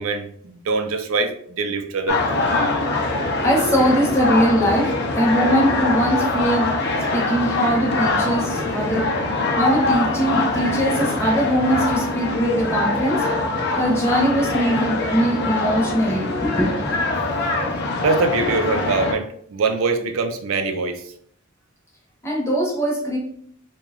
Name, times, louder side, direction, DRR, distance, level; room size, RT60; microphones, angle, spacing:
voice 1, 0.0-2.4 18.0-21.0, right 3 dB, 75° right, 6 dB, 0.4 m, -23 dB
sound 1, 2.1-19.1, left 2 dB, 55° left, 0.6 m, -23 dB
voice 2, 3.4-6.9 7.1-9.1 9.6-13.3 13.7-17.0 22.2-23.2, equal, 15° left, -2 dB, 0.9 m, -21 dB
3.0 x 2.2 x 3.6 m, 0.63 s
head